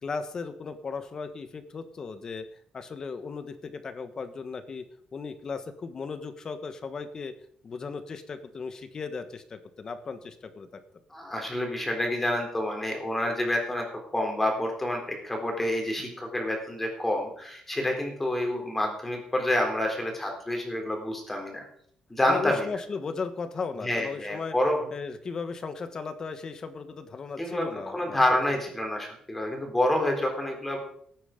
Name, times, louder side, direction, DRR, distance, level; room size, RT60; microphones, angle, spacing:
voice 1, 0.0-2.4 2.7-4.9 5.1-7.3 7.6-10.8 22.3-24.5 24.9-28.2, left 4 dB, 30° left, 10 dB, 1.3 m, -36 dB
voice 2, 11.1-13.9 14.1-21.7 22.1-22.7 23.8-24.8 27.4-30.8, left 1 dB, 10° left, 2 dB, 3.8 m, -28 dB
17.5 x 9.3 x 5.2 m, 0.63 s
cardioid pair, 160°, 2 cm